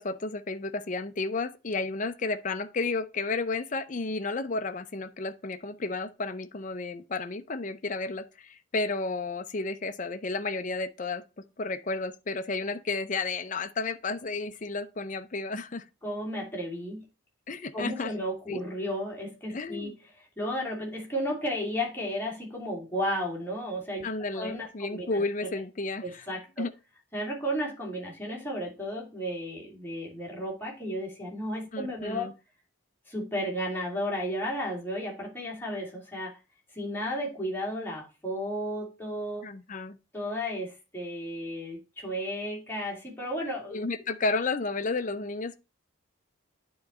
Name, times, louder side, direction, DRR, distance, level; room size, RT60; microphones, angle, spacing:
voice 1, 0.0-11.2 11.6-15.8 17.5-18.1 18.5-18.6 19.5-19.9 24.0-26.2 26.6-26.7 31.7-32.3 39.4-40.0 43.7-45.6, left 3 dB, 40° left, 0.6 m, -32 dB
voice 2, 16.0-17.1 17.7-25.6 26.0-26.6 27.1-32.3 33.1-36.3 36.7-39.4 40.1-43.8, equal, 10° left, 2.6 m, -33 dB
9.5 x 3.9 x 4.2 m
head